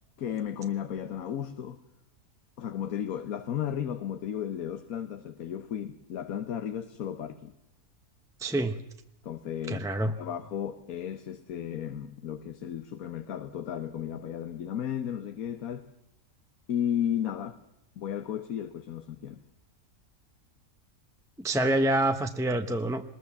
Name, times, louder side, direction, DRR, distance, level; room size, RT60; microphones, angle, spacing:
voice 1, 0.2-1.8 2.6-7.5 9.2-15.9 16.7-17.6 18.0-19.4, left 9 dB, 75° left, 10 dB, 1.4 m, -34 dB
voice 2, 8.4-8.8 9.7-10.1 21.4-23.0, right 1 dB, 5° right, 7 dB, 0.5 m, -27 dB
20.5 x 20.5 x 7.1 m, 0.85 s
omnidirectional pair, 1.5 m